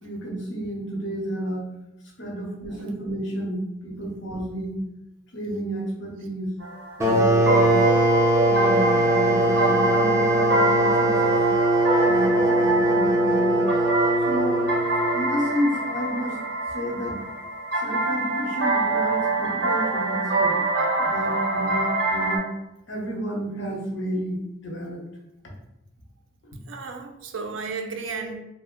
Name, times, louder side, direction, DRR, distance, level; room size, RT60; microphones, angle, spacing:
voice 1, 0.0-1.6 2.2-4.8 5.3-6.5 7.0-7.8 8.4-11.4 12.0-13.6 14.2-14.6 15.1-16.4 16.7-17.2 17.7-20.6 21.0-22.4 22.9-25.0 26.5-26.6, equal, 65° left, -1 dB, 0.8 m, -31 dB
sound 1, 6.6-22.4, right 2 dB, 55° right, 0.9 m, -25 dB
sound 2, 7.0-15.4, right 1 dB, 15° right, 0.4 m, -21 dB
voice 2, 26.7-28.4, right 4 dB, 75° right, 4 dB, 0.4 m, -33 dB
2.7 x 2.1 x 3.6 m, 0.89 s
head